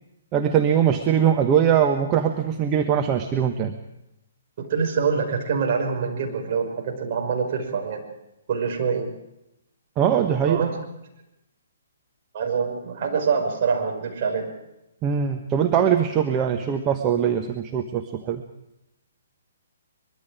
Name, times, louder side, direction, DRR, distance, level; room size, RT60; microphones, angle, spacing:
voice 1, 0.3-3.7 10.0-10.6 15.0-18.4, right 8 dB, 25° right, 5 dB, 1.3 m, -21 dB
voice 2, 4.6-8.0 8.5-9.1 10.2-10.7 12.3-14.5, right 5 dB, 45° right, 2 dB, 5.6 m, -25 dB
23.5 x 22.5 x 5.0 m, 0.87 s
figure-of-eight pair, 130°, 0 cm